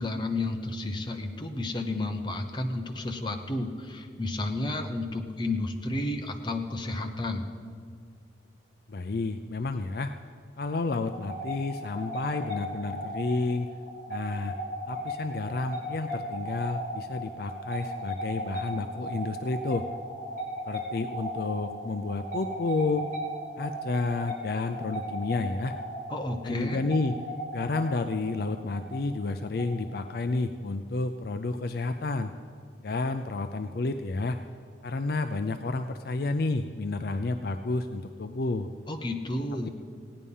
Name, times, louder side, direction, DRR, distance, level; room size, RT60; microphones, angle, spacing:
voice 1, 0.0-7.5 26.1-26.8 38.9-39.7, left 2 dB, 25° left, 4 dB, 0.9 m, -31 dB
voice 2, 8.9-10.1 10.6-13.7 14.1-14.5 14.9-19.9 20.7-23.1 23.6-25.7 26.4-27.2 27.5-32.3 32.8-34.4 34.8-38.7, left 3 dB, 55° left, 8 dB, 0.4 m, -30 dB
sound 1, 11.0-30.3, equal, 40° right, 2.6 m, -37 dB
16.5 x 9.8 x 5.5 m, 2.1 s
head